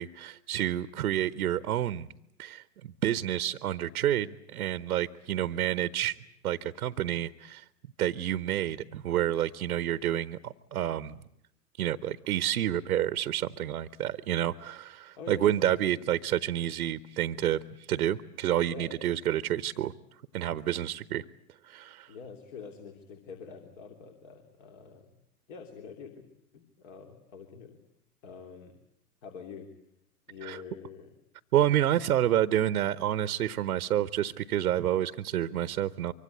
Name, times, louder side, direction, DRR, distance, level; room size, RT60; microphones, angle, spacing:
voice 1, 0.0-2.1 2.4-6.2 6.4-7.6 8.0-11.2 11.8-17.6 17.9-19.9 20.3-21.2 21.6-22.1 30.4-30.6 31.5-36.1, right 11 dB, 70° right, 16 dB, 1.0 m, -29 dB
voice 2, 15.2-15.6 15.8-15.9 18.6-19.0 22.1-25.2 25.5-26.2 26.5-27.8 28.2-28.7 29.2-29.7 30.3-31.1, left 5 dB, 50° left, 5 dB, 3.3 m, -45 dB
24.5 x 24.5 x 8.3 m, 0.75 s
figure-of-eight pair, 105°, 47 cm